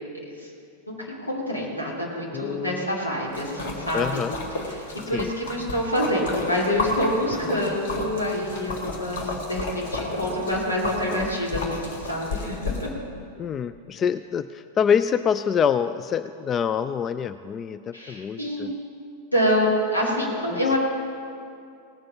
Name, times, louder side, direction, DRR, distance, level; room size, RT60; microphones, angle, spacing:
voice 1, 0.9-4.2 4.6-12.9 17.9-18.7 19.3-20.8, left 1 dB, 80° left, -3 dB, 2.8 m, -27 dB
voice 2, 2.3-2.9 3.9-4.3 5.1-5.3 11.1-11.3 13.4-18.7 20.5-20.8, left 7 dB, 25° left, 12 dB, 0.3 m, -26 dB
Splash splatter, 3.3-12.9, left 2 dB, 55° left, 1.9 m, -32 dB
18.0 x 7.7 x 5.8 m, 2.5 s
figure-of-eight pair, 90°, 0 cm